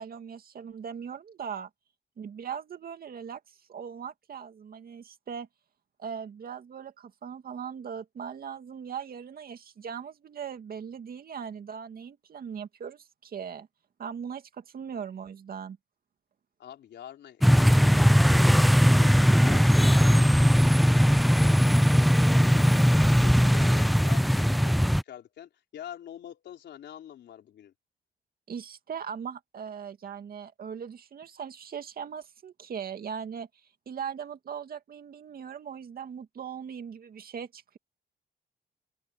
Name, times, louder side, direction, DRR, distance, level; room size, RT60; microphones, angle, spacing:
voice 1, 0.0-1.7 2.2-5.5 6.0-13.7 14.0-15.8 28.5-33.5 33.9-37.8, right 7 dB, 55° right, 2.3 m, -39 dB
voice 2, 16.6-18.4 18.8-27.7, left 10 dB, 75° left, 4.4 m, -46 dB
sound 1, 17.4-25.0, equal, ahead, 0.3 m, -19 dB
open air
cardioid pair, 95°, 18 cm